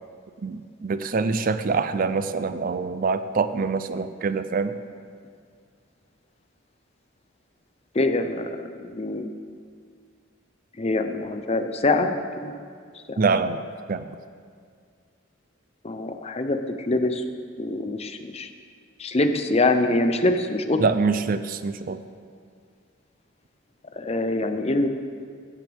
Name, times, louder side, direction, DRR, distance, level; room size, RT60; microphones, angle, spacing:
voice 1, 0.4-4.8 13.2-13.6 13.9-14.0 20.8-22.0, right 4 dB, 45° right, 11 dB, 0.4 m, -25 dB
voice 2, 7.9-9.3 10.8-12.5 13.1-13.2 15.8-17.2 17.6-18.5 19.0-20.8 23.9-24.9, left 2 dB, 30° left, 7 dB, 0.7 m, -24 dB
15.5 x 12.0 x 3.5 m, 2.1 s
head